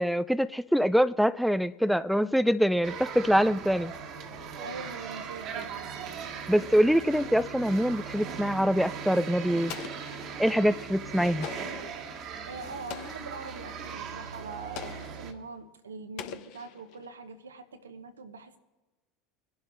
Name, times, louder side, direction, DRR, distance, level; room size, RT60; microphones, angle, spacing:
voice 1, 0.0-3.9 6.5-9.7 10.4-11.5, equal, ahead, 0.3 m, -24 dB
sound 1, 2.8-15.3, right 6 dB, 50° right, 1.5 m, -39 dB
voice 2, 4.6-5.9 6.2-6.3 12.5-18.6, right 4 dB, 80° right, 0.9 m, -43 dB
Explosion, 9.7-10.6 11.4-12.0 12.9-13.4 14.8-15.3 16.2-17.1, left 10 dB, 55° left, 0.9 m, -42 dB
25.5 x 11.0 x 2.6 m
figure-of-eight pair, 75°, 0 cm